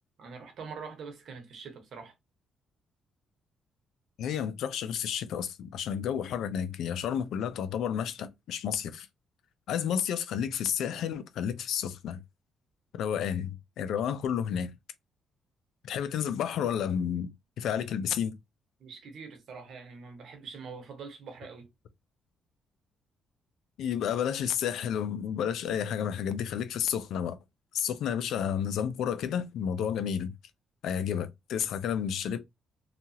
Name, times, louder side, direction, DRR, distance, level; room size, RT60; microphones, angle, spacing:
voice 1, 0.2-2.1 18.8-21.7, right 5 dB, 65° right, 1.0 m, -44 dB
voice 2, 4.2-9.1 9.7-12.2 12.9-14.7 15.8-17.3 17.6-18.4 23.8-27.4 27.7-30.3 30.8-32.4, left 8 dB, 80° left, 0.4 m, -31 dB
2.8 x 2.4 x 2.8 m
cardioid pair, 90°, 0 cm